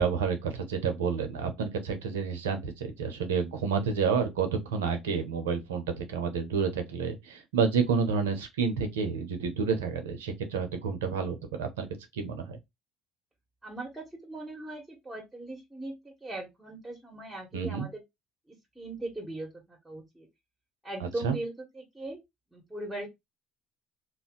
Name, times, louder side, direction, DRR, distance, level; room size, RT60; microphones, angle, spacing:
voice 1, 0.0-11.9 12.1-12.6 17.5-17.9 21.0-21.4, right 5 dB, 90° right, 0.7 m, -29 dB
voice 2, 13.6-18.0 18.5-20.3 20.8-22.2 22.5-23.1, right 2 dB, 10° right, 1.4 m, -39 dB
2.6 x 2.1 x 3.8 m
hypercardioid pair, 70°, 0 cm